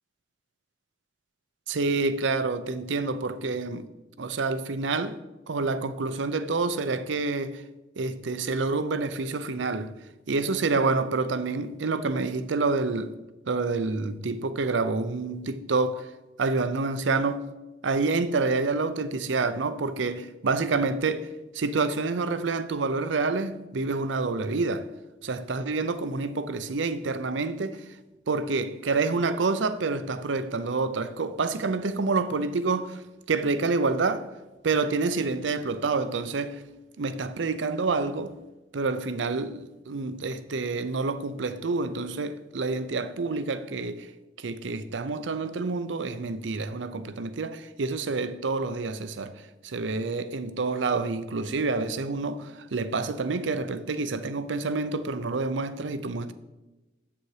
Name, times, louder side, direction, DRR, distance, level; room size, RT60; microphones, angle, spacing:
voice 1, 1.7-3.8 4.2-5.2 5.5-7.6 8.0-9.9 10.3-13.1 13.5-16.1 16.4-17.4 17.8-24.9 25.2-27.8 28.3-34.3 34.6-36.6 37.0-38.3 38.7-44.1 44.4-49.3 49.6-56.3, right 3 dB, 80° right, 0.6 m, -28 dB
7.8 x 6.9 x 4.8 m
head